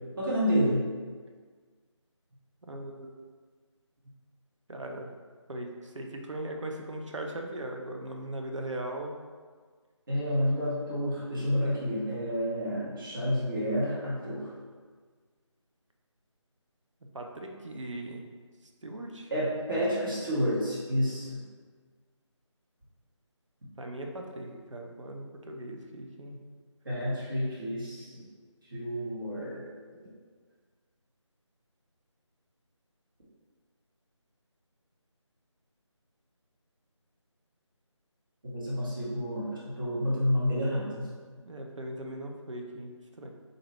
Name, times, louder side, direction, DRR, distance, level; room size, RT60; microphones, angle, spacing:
voice 1, 0.2-0.8 10.1-14.5 19.3-21.4 26.8-28.1 28.7-29.6 38.5-41.1, equal, 45° right, -8 dB, 1.2 m, -29 dB
voice 2, 2.7-3.3 4.7-5.1 5.5-9.1 17.1-18.2 18.8-19.3 23.8-26.4 41.4-43.3, right 1 dB, 70° right, 2 dB, 0.6 m, -39 dB
3.9 x 2.6 x 3.1 m, 1.5 s
figure-of-eight pair, 165°, 16 cm